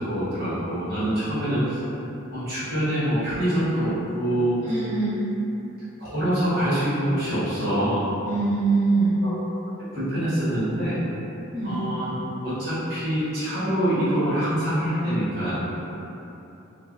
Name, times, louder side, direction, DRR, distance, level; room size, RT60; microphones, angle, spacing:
voice 1, 0.0-1.8 2.3-4.6 6.0-8.1 9.2-9.3 9.9-11.0 11.6-12.1 12.4-15.5, equal, 50° right, -13 dB, 1.1 m, -25 dB
voice 2, 4.6-5.2 8.2-9.2 11.5-11.8, right 3 dB, 30° right, -15 dB, 0.7 m, -23 dB
2.6 x 2.1 x 3.5 m, 3.0 s
head